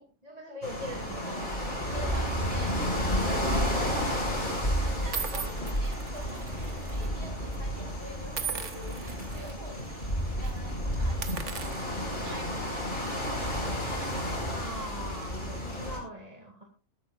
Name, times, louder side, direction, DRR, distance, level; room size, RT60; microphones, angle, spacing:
voice 1, 0.0-1.5 3.2-4.1 4.5-4.8 5.3-5.5 14.5-16.6, equal, 30° right, 1 dB, 2.5 m, -42 dB
sound 1, 0.6-16.0, equal, 40° left, 6.7 m, -31 dB
voice 2, 1.9-3.5 4.8-11.9 12.2-13.3, right 1 dB, 50° right, 1 dB, 6.1 m, -47 dB
sound 2, 5.1-7.1 7.4-7.6 8.3-9.5 9.9-10.1 10.4-10.6 11.1-12.6, right 6 dB, 70° right, 1.8 m, -39 dB
21.5 x 12.0 x 2.5 m, 0.35 s
omnidirectional pair, 1.3 m